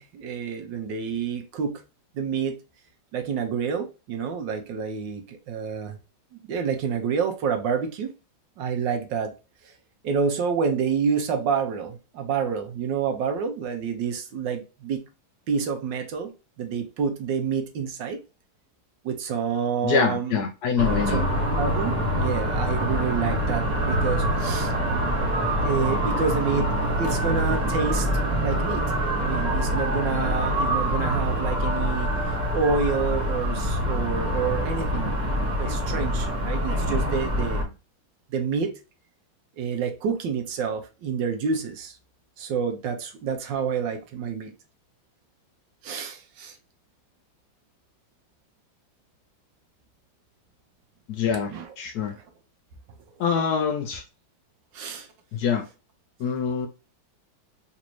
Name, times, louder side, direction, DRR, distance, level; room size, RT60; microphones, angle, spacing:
voice 1, 0.0-1.8 2.1-2.6 3.1-6.0 6.3-8.1 8.6-9.3 9.6-9.7 10.0-15.0 15.5-16.3 16.6-18.2 19.0-20.4 21.1-21.2 21.5-24.7 25.6-28.1 28.4-28.8 29.2-37.7 38.3-38.7 39.6-42.0 42.4-44.5 45.8-46.6 51.5-51.7 52.1-52.2 54.7-55.1, right 6 dB, 75° right, 1.4 m, -28 dB
voice 2, 19.8-21.2 51.1-51.5 51.8-52.1 53.2-54.0 55.3-55.7 56.2-56.7, left 6 dB, 75° left, 0.9 m, -24 dB
sound 1, 20.8-37.6, equal, 25° right, 1.1 m, -25 dB
4.0 x 2.6 x 3.0 m
omnidirectional pair, 2.1 m